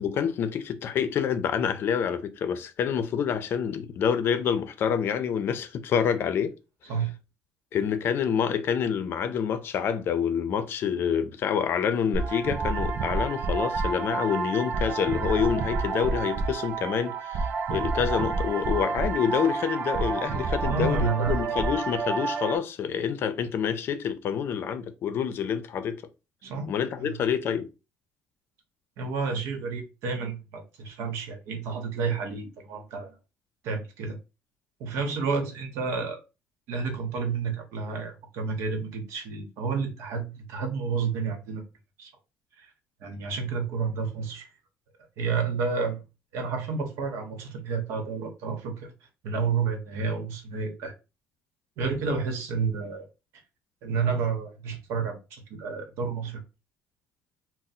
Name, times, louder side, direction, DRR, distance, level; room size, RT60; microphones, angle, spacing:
voice 1, 0.0-6.5 7.7-26.0 26.7-27.7, left 7 dB, 55° left, 0.5 m, -27 dB
sound 1, 12.1-22.6, right 4 dB, 45° right, 0.4 m, -29 dB
voice 2, 20.6-21.4 26.4-27.2 29.0-33.1 33.6-34.2 34.8-36.2 36.7-41.6 42.0-42.1 42.6-42.7 43.0-44.5 45.2-46.0 46.3-48.9 49.2-50.9 51.8-53.1 53.8-56.4, right 5 dB, 80° right, 0.9 m, -30 dB
2.7 x 2.0 x 4.0 m
cardioid pair, 110°, 5 cm